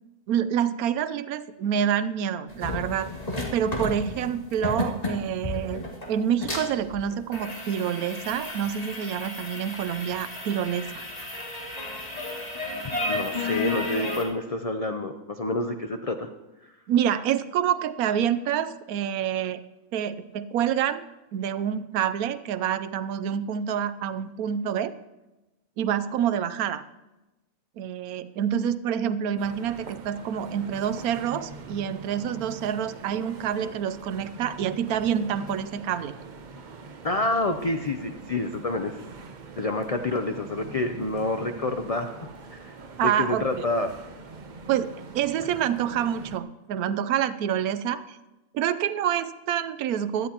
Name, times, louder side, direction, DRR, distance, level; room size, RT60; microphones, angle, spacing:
voice 1, 0.3-3.1 3.5-5.8 6.1-11.0 16.9-19.6 19.9-21.0 21.3-24.9 25.8-26.8 27.8-36.1 43.0-43.7 44.7-48.2 48.5-50.3, right 9 dB, 85° right, 13 dB, 1.1 m, -27 dB
sound 1, 2.5-14.2, left 2 dB, 25° left, 1.9 m, -33 dB
voice 2, 13.1-16.3 37.0-39.0 39.6-42.2 42.5-42.8 43.0-43.9, left 2 dB, 70° left, 6 dB, 0.3 m, -28 dB
sound 2, 29.4-46.4, right 3 dB, 40° right, 0.7 m, -44 dB
17.0 x 12.0 x 2.9 m, 1.0 s
omnidirectional pair, 1.5 m